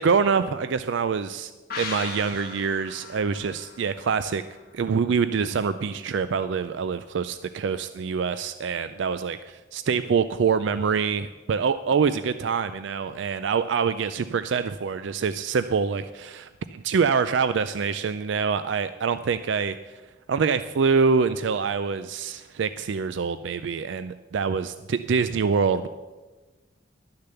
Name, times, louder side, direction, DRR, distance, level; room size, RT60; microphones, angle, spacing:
voice 1, 0.0-1.5 1.8-4.4 4.7-9.4 9.7-19.8 20.3-25.9, right 5 dB, 65° right, 12 dB, 0.4 m, -25 dB
sound 1, 1.7-5.2 5.5-5.6, left 5 dB, 50° left, 1.4 m, -39 dB
12.0 x 6.7 x 6.9 m, 1.2 s
head